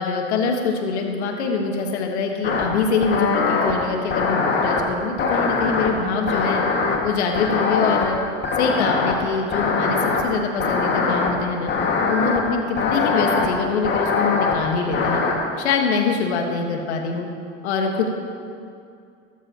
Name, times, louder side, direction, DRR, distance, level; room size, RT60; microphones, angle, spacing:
voice 1, 0.0-6.6 7.0-8.2 8.6-11.7 12.1-15.2 15.6-17.3 17.6-18.1, left 5 dB, 85° left, 2 dB, 1.5 m, -24 dB
sound 1, 2.4-2.6 3.0-3.7 4.1-4.8 5.2-5.9 6.3-7.0 7.4-8.1 8.4-9.1 9.5-10.2 10.6-11.3 11.7-12.4 12.8-13.5 13.8-14.5 14.9-15.4, left 4 dB, 35° left, 1.9 m, -21 dB
14.0 x 13.0 x 2.9 m, 2.4 s
supercardioid pair, 105°, 33 cm